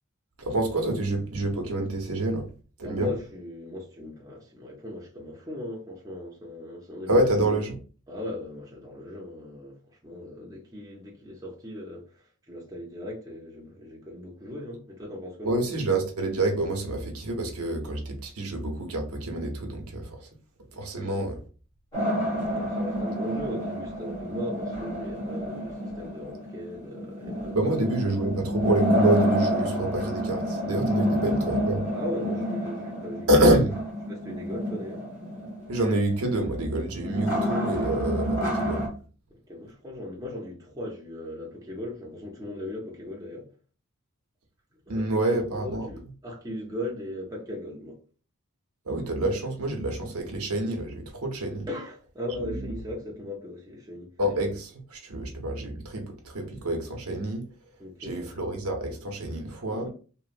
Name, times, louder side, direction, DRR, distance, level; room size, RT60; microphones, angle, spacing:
voice 1, 0.4-2.5 2.8-3.1 7.1-7.8 15.4-20.3 20.7-21.3 27.5-31.8 33.3-33.7 35.7-38.9 44.9-45.9 48.9-51.7 52.4-52.7 54.2-57.4 58.0-59.9, right 1 dB, 80° right, 0.7 m, -27 dB
voice 2, 2.8-7.5 8.1-15.5 20.9-21.2 22.5-28.0 31.0-31.1 31.9-33.4 34.1-35.0 39.5-43.5 44.9-48.0 51.7-54.1 57.8-58.5 59.7-59.9, left 1 dB, 15° right, 0.5 m, -38 dB
sound 1, 21.9-38.9, equal, 15° left, 0.9 m, -29 dB
2.9 x 2.0 x 2.4 m
head